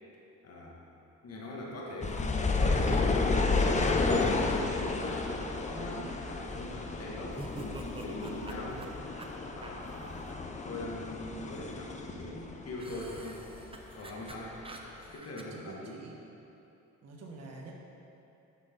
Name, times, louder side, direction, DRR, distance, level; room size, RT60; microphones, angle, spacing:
voice 1, 0.4-0.8 1.2-5.4 5.7-8.9 9.5-10.4 10.6-13.5 13.9-14.6 15.1-16.0, left 1 dB, 55° left, -3 dB, 1.8 m, -42 dB
sound 1, 2.0-13.2 13.5-14.6 15.1-15.2, left 3 dB, 25° left, 0.7 m, -31 dB
sound 2, 7.3-10.3 12.8-15.4, right 2 dB, 20° right, 0.7 m, -47 dB
voice 2, 15.5-16.2 17.0-17.7, right 3 dB, 60° right, -1 dB, 1.3 m, -47 dB
11.5 x 5.4 x 3.7 m, 3.0 s
cardioid pair, 90°, 30 cm